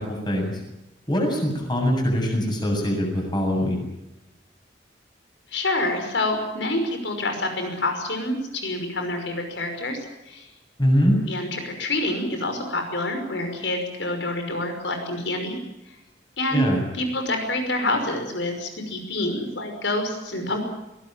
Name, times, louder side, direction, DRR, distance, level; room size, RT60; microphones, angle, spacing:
voice 1, 0.1-0.6 1.1-3.8 10.8-11.1 16.5-16.8, equal, 25° left, 1 dB, 7.8 m, -22 dB
voice 2, 5.5-10.5 11.3-15.6 16.4-16.7 16.9-20.6, left 1 dB, 80° left, 5 dB, 5.7 m, -27 dB
22.0 x 18.0 x 9.1 m, 0.93 s
head